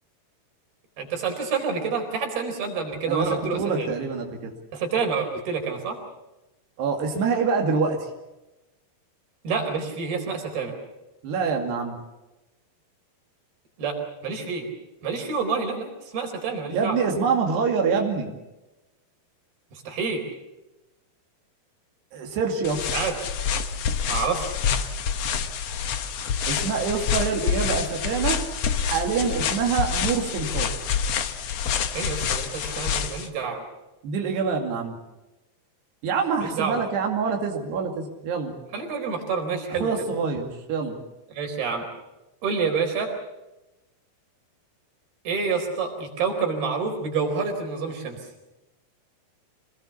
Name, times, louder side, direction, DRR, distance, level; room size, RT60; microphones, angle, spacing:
voice 1, 1.0-3.9 4.7-6.0 9.4-10.7 13.8-14.7 15.0-17.0 19.7-20.2 22.9-23.2 24.1-24.6 31.9-33.6 36.4-36.8 38.7-39.9 41.3-41.9 42.4-43.1 45.2-48.2, right 5 dB, 70° right, 3 dB, 6.2 m, -28 dB
voice 2, 3.1-4.5 6.8-8.1 11.2-12.0 16.7-18.3 22.1-22.9 26.5-28.4 28.8-30.7 34.0-35.0 36.0-38.5 39.7-41.0, right 5 dB, 85° right, 2 dB, 4.6 m, -26 dB
sound 1, 22.6-33.3, left 7 dB, 65° left, 1.6 m, -27 dB
26.5 x 20.0 x 7.1 m, 1.0 s
omnidirectional pair, 4.6 m